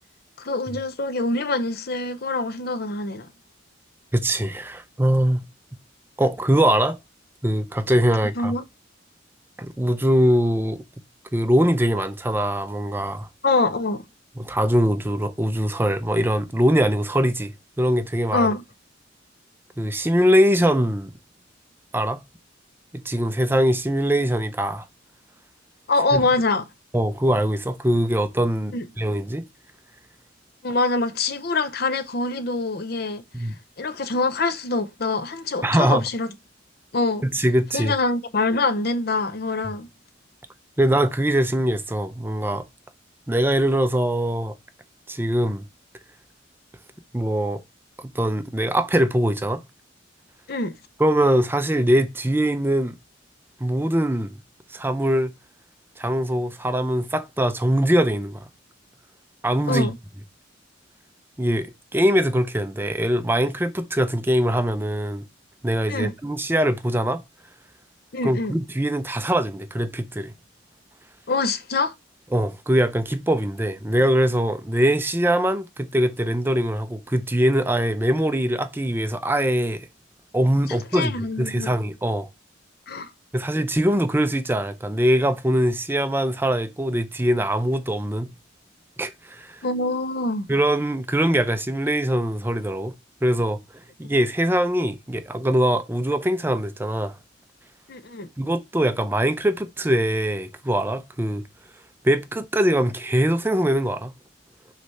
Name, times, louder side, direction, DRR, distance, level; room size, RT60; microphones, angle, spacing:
voice 1, 0.4-3.3 8.4-8.6 13.4-14.0 18.3-18.6 25.9-26.7 28.7-28.8 30.6-33.2 33.8-36.3 36.9-37.2 37.7-39.9 50.5-50.7 59.7-60.0 65.9-66.1 68.1-68.6 71.3-71.9 80.9-81.7 82.9-83.1 89.6-90.5 94.0-94.1 97.9-98.3, left 3 dB, 50° left, 0.7 m, -24 dB
voice 2, 4.1-5.5 6.2-7.0 7.4-8.5 9.6-10.8 11.3-13.3 14.4-18.5 19.8-21.1 21.9-22.2 22.9-24.9 26.1-26.2 26.9-29.4 33.3-33.6 35.6-36.0 37.2-37.9 40.8-42.6 43.3-44.5 45.1-45.7 47.1-47.6 48.0-49.6 51.0-52.9 53.6-54.4 54.7-55.3 56.0-58.5 59.4-59.9 61.4-65.2 65.6-67.2 68.2-70.3 72.3-79.9 80.3-82.3 83.3-88.3 89.0-89.6 90.5-92.9 93.2-93.6 94.0-97.1 98.4-101.4 102.0-104.1, equal, 10° right, 0.5 m, -22 dB
6.4 x 3.3 x 5.5 m
head